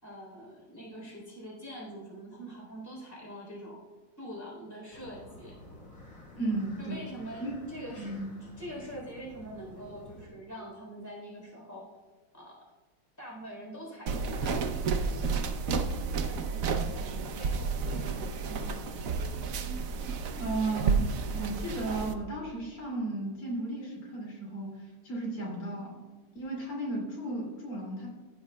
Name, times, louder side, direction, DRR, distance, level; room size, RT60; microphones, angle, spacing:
voice 1, 0.0-3.8 4.2-5.6 6.8-12.0 12.3-12.6 13.2-15.7 16.2-18.8, equal, 5° left, -3 dB, 3.5 m, -44 dB
sound 1, 4.9-10.3, left 1 dB, 25° left, 2.1 m, -51 dB
voice 2, 6.4-7.0 7.4-7.6 8.0-8.4 20.4-25.9 26.4-28.1, right 2 dB, 75° left, -3 dB, 3.5 m, -34 dB
sound 2, 14.1-22.1, right 4 dB, 85° right, 0.7 m, -31 dB
15.5 x 9.6 x 2.3 m, 1.3 s
omnidirectional pair, 2.4 m